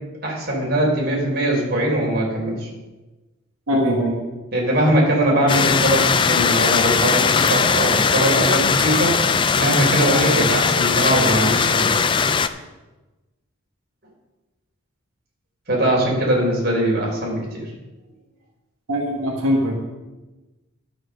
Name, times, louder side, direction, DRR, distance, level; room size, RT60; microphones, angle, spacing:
voice 1, 0.2-2.7 4.5-9.1 9.5-12.0 15.7-17.7, right 1 dB, 45° right, -2 dB, 3.6 m, -21 dB
voice 2, 3.7-4.2 18.9-19.7, equal, 85° right, -1 dB, 1.7 m, -21 dB
sound 1, 5.5-12.5, left 5 dB, 25° left, 0.3 m, -19 dB
11.5 x 6.2 x 6.4 m, 1.1 s
head